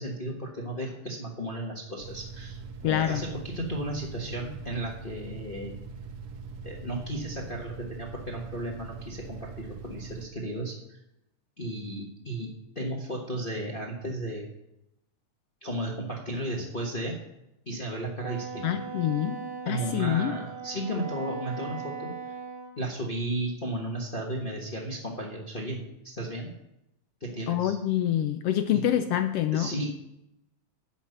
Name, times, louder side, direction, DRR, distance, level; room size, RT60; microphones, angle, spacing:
voice 1, 0.0-2.6 2.9-5.7 6.6-11.0 11.6-12.5 12.7-14.5 15.6-17.2 17.7-18.8 19.6-22.1 22.8-26.5 27.2-27.8 28.7-28.9 29.5-30.0, right 1 dB, 40° left, -1 dB, 0.7 m, -34 dB
sound 1, 2.0-10.3, right 4 dB, 65° right, 1.6 m, -42 dB
voice 2, 2.8-3.2 18.6-20.3 27.5-29.7, left 11 dB, 85° left, 8 dB, 1.4 m, -26 dB
Wind instrument woodwind instrument, 18.2-22.7, right 5 dB, 35° right, 1.8 m, -39 dB
10.5 x 5.9 x 7.7 m, 0.85 s
omnidirectional pair, 3.3 m